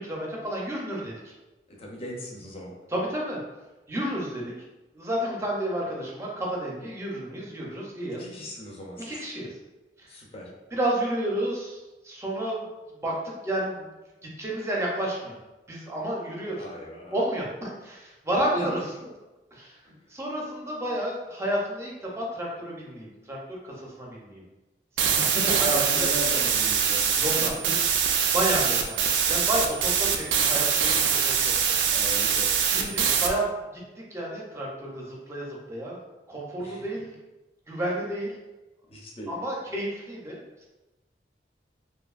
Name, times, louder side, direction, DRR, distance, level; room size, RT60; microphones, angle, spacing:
voice 1, 0.0-1.3 2.9-3.4 3.9-4.5 4.9-8.3 9.0-9.5 10.0-10.1 10.7-11.8 12.0-12.7 13.0-13.9 14.2-15.4 15.7-16.6 17.1-18.8 19.5-19.8 20.1-24.4 25.0-26.1 27.2-27.5 28.3-29.0 29.3-31.5 32.7-36.0 36.3-37.1 37.7-38.3 39.3-40.7, right 1 dB, 15° right, -3 dB, 0.5 m, -31 dB
voice 2, 1.7-2.7 8.2-9.2 10.1-10.5 16.6-17.2 18.6-18.7 19.8-20.0 25.1-27.7 29.2-29.3 31.9-32.9 36.6-36.8 38.9-39.3, left 1 dB, 35° left, -2 dB, 0.5 m, -38 dB
sound 1, 25.0-33.3, right 7 dB, 80° right, 0.3 m, -24 dB
2.7 x 2.5 x 2.4 m, 1.1 s
head